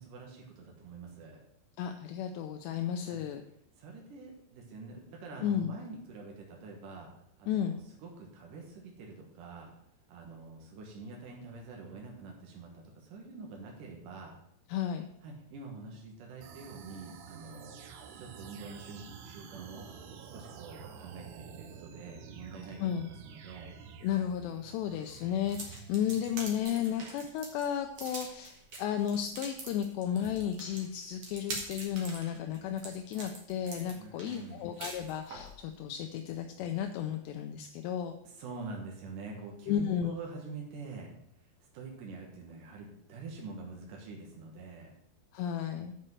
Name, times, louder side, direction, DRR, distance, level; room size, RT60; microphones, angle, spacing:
voice 1, 0.0-1.4 3.1-3.2 3.8-7.1 7.4-9.7 10.1-14.4 15.2-19.9 20.3-23.7 25.1-25.2 33.9-34.7 38.2-41.1 41.7-44.9 45.7-45.8, right 4 dB, 70° right, 0 dB, 2.0 m, -46 dB
voice 2, 1.8-3.4 5.4-5.8 7.5-7.8 14.7-15.1 22.8-23.1 24.0-38.2 39.7-40.1 45.3-45.9, left 9 dB, 85° left, 6 dB, 2.4 m, -33 dB
sound 1, 16.4-26.6, right 7 dB, 90° right, 3.5 m, -50 dB
sound 2, 25.5-35.5, right 2 dB, 50° right, 1.9 m, -44 dB
8.9 x 5.5 x 7.6 m, 0.75 s
omnidirectional pair, 5.6 m